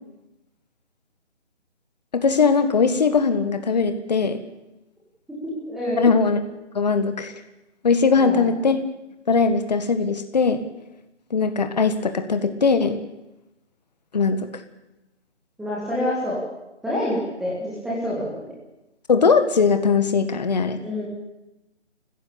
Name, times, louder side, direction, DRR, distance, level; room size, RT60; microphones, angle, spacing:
voice 1, 2.1-4.4 6.0-6.5 6.7-7.3 7.8-8.8 9.3-10.6 11.3-13.0 14.1-14.5 19.1-20.8, left 5 dB, 35° left, 9 dB, 1.7 m, -20 dB
voice 2, 5.7-6.0 8.2-8.5 15.6-16.4 16.8-18.5 20.8-21.1, left 1 dB, ahead, -6 dB, 1.9 m, -27 dB
25.0 x 15.5 x 8.7 m, 0.96 s
figure-of-eight pair, 165°, 36 cm